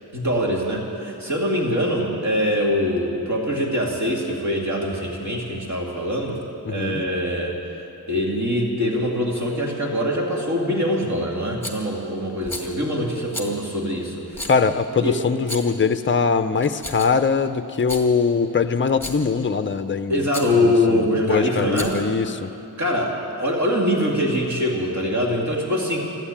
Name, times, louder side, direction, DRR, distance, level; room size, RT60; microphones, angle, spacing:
voice 1, 0.1-6.4 6.7-7.5 8.1-14.5 15.0-15.2 20.1-22.0 22.8-26.0, left 1 dB, 40° right, -2 dB, 2.8 m, -23 dB
voice 2, 6.7-7.0 14.5-20.3 20.5-22.5, left 5 dB, 30° left, 10 dB, 0.6 m, -22 dB
Rattle, 11.6-11.9 12.4-12.7 13.3-13.5 14.3-14.6 15.4-15.8 16.6-17.3 17.7-18.1 18.9-19.3 20.3-20.5 21.6-22.1, left 1 dB, 5° left, 1.8 m, -33 dB
13.5 x 12.0 x 8.7 m, 2.8 s
wide cardioid pair, 95°, 42 cm